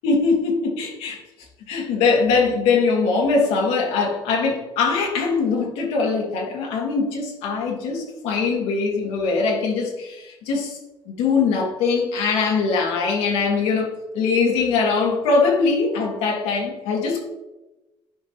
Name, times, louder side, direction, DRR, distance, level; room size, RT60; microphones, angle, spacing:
voice 1, 0.0-1.2 1.7-10.8 11.2-17.2, left 4 dB, 90° left, -1 dB, 1.8 m, -22 dB
10.5 x 4.8 x 2.9 m, 1.1 s
cardioid pair, 105°, 10 cm